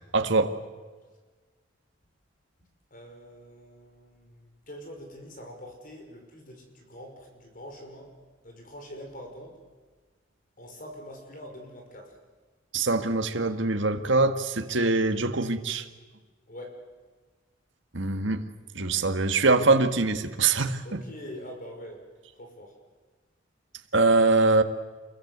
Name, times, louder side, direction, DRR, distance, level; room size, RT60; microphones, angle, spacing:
voice 1, 0.1-0.5 12.7-15.9 17.9-18.4 18.8-21.0 23.9-24.6, right 3 dB, 65° right, 7 dB, 1.8 m, -23 dB
voice 2, 2.9-8.1 8.4-9.6 10.6-12.2 16.5-16.8 20.8-22.1 22.4-22.8, equal, 45° left, 3 dB, 5.4 m, -44 dB
28.0 x 22.5 x 8.1 m, 1.4 s
head